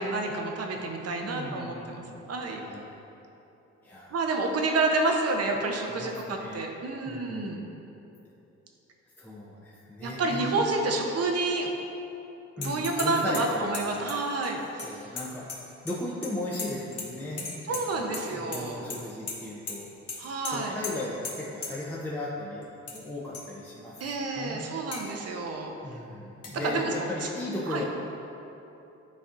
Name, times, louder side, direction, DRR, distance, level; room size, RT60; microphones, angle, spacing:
voice 1, 0.0-2.0 2.3-2.6 4.1-7.6 10.0-11.7 12.6-15.1 17.7-18.8 20.2-20.8 24.0-25.7 26.5-26.9 27.7-27.8, right 3 dB, 55° right, 2 dB, 0.8 m, -29 dB
voice 2, 1.2-2.2 2.6-2.8 3.8-4.2 5.9-6.7 7.0-7.8 9.2-10.7 12.6-14.2 14.8-19.9 20.5-24.7 25.8-27.8, left 1 dB, 5° left, -6 dB, 0.7 m, -37 dB
sound 1, 12.6-13.1 13.3-16.0 16.2-17.1 17.4-18.2 18.5-19.0 19.3-19.4 19.7-19.8 20.1-20.2 20.4-20.5 20.8-20.9 21.2-21.3 21.6-21.7 22.6-23.0 23.3-23.4 24.0-24.1 24.9-25.0 26.4-26.5, left 4 dB, 50° left, 1.2 m, -36 dB
9.7 x 4.1 x 2.5 m, 3.0 s
cardioid pair, 90°, 30 cm